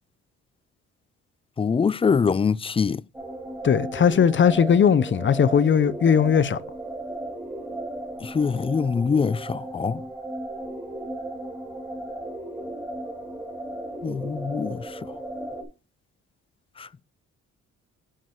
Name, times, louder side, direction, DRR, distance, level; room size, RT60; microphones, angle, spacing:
voice 1, 1.6-3.0 8.2-10.0 14.0-14.8, left 5 dB, 20° left, 0.3 m, -23 dB
sound 1, 3.1-15.6, right 1 dB, 10° right, 3.4 m, -35 dB
voice 2, 3.6-6.6, left 7 dB, 40° left, 0.7 m, -19 dB
7.5 x 4.9 x 5.9 m
cardioid pair, 90°, 30 cm